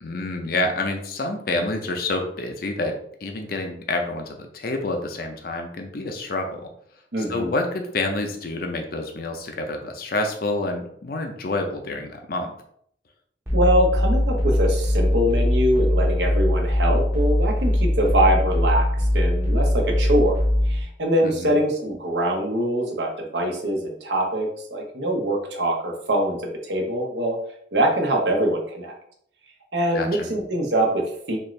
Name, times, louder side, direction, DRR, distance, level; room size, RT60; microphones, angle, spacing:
voice 1, 0.0-3.0 3.2-6.7 7.2-12.5 21.2-21.6 29.9-30.3, left 2 dB, 55° left, 4 dB, 0.6 m, -28 dB
voice 2, 7.1-7.5 13.5-18.9 19.1-20.4 20.7-27.4 27.7-28.9 29.7-31.4, right 1 dB, 75° right, 1 dB, 1.0 m, -23 dB
sound 1, 13.5-20.8, left 1 dB, 15° right, 0.7 m, -21 dB
4.3 x 2.5 x 3.2 m, 0.66 s
head